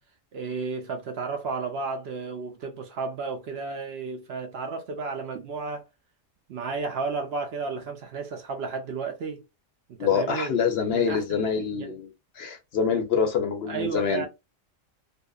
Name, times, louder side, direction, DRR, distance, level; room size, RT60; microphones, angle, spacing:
voice 1, 0.3-5.8 6.5-9.4 9.9-10.6 10.9-11.9 13.7-14.3, right 4 dB, 65° right, 0.7 m, -33 dB
voice 2, 10.0-12.1 12.4-14.3, left 6 dB, 60° left, 0.7 m, -25 dB
2.7 x 2.4 x 2.2 m
omnidirectional pair, 1.3 m